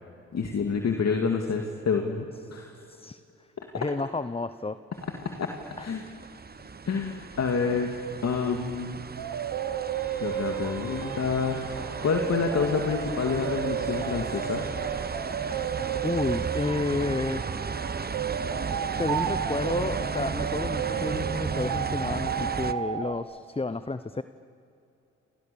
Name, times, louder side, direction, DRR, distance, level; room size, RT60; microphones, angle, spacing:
voice 1, 0.3-2.2 2.5-2.8 5.4-5.5 5.8-6.1 6.9-7.9 8.2-9.0 10.2-11.6 12.0-14.6, left 5 dB, 55° left, 3 dB, 2.4 m, -28 dB
voice 2, 2.9-3.2 3.7-4.8 5.8-5.9 16.0-17.5 18.9-24.2, left 3 dB, 20° left, 13 dB, 0.9 m, -31 dB
sound 1, 5.0-22.7, right 5 dB, 30° right, 1.0 m, -35 dB
sound 2, 9.2-23.1, right 9 dB, 80° right, 1.8 m, -33 dB
Bowed string instrument, 9.9-16.8, right 4 dB, 5° right, 5.8 m, -44 dB
29.5 x 28.0 x 7.1 m, 2.7 s
supercardioid pair, 45°, 31 cm